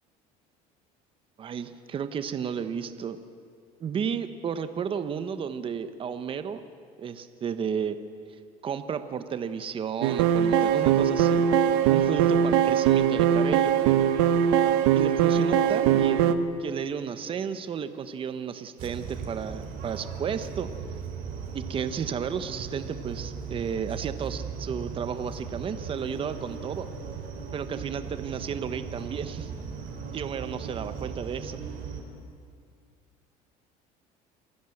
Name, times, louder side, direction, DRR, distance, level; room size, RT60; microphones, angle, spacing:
voice 1, 1.4-3.2 3.8-6.6 7.0-8.0 8.6-11.4 11.9-13.7 14.9-16.3 16.6-20.7 21.5-26.9 27.5-29.5 30.1-31.6, right 7 dB, 35° right, 10 dB, 1.1 m, -33 dB
sound 1, 10.0-16.3, right 9 dB, 90° right, 1.2 m, -21 dB
sound 2, 18.8-32.0, right 6 dB, 60° right, 4.2 m, -38 dB
27.5 x 15.5 x 7.9 m, 2.3 s
cardioid pair, 125°, 16 cm